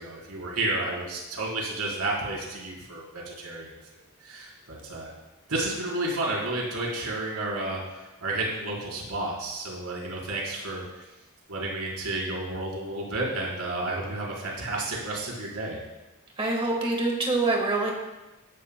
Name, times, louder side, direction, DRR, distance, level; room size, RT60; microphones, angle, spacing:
voice 1, 0.0-3.7 4.2-5.1 5.5-10.8 11.5-15.8, right 2 dB, 80° right, -4 dB, 4.1 m, -31 dB
voice 2, 16.4-17.9, right 2 dB, 25° right, 0 dB, 1.4 m, -25 dB
16.0 x 12.0 x 2.2 m, 1.0 s
head